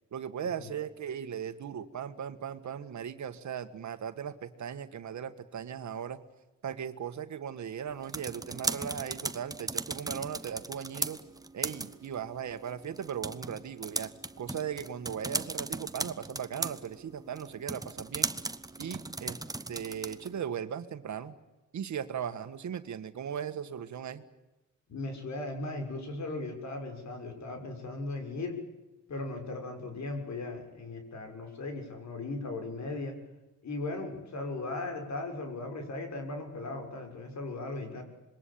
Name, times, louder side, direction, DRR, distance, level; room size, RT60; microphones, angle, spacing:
voice 1, 0.1-6.2 6.6-11.2 11.5-14.1 14.4-18.3 18.8-19.4 19.7-21.3 21.7-24.2, right 8 dB, 65° right, 10 dB, 1.8 m, -38 dB
sound 1, 7.9-20.4, right 2 dB, 10° right, 1.1 m, -38 dB
voice 2, 24.9-28.5 29.1-33.1 33.6-38.0, left 2 dB, 60° left, 5 dB, 6.5 m, -37 dB
26.5 x 22.0 x 8.7 m, 1.0 s
cardioid pair, 115°, 31 cm